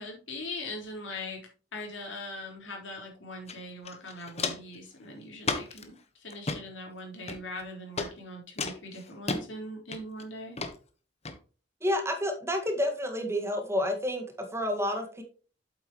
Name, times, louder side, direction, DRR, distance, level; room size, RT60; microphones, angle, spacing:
voice 1, 0.0-1.4 1.7-10.6, left 1 dB, 90° left, 0 dB, 4.2 m, -41 dB
Walk footsteps, 3.5-3.6 3.8-4.8 5.4-5.8 6.3-6.6 7.3-7.6 8.0-8.1 8.6-9.4 9.9-10.2 10.6-10.7 11.3-11.4, left 4 dB, 35° left, 1.2 m, -33 dB
voice 2, 11.8-15.2, left 1 dB, 15° right, 4 dB, 1.8 m, -29 dB
8.4 x 7.9 x 3.1 m, 0.37 s
head